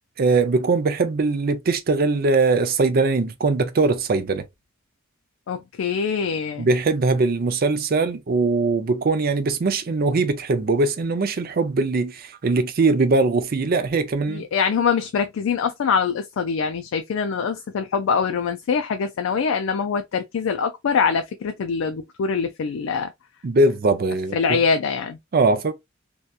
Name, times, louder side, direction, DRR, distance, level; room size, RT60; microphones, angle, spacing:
voice 1, 0.2-4.4 6.6-14.4 23.4-24.6 25.3-25.7, right 3 dB, 50° right, 0.4 m, -21 dB
voice 2, 5.5-6.7 14.3-23.1 24.3-25.2, left 6 dB, 80° left, 0.4 m, -24 dB
2.7 x 2.2 x 2.3 m
head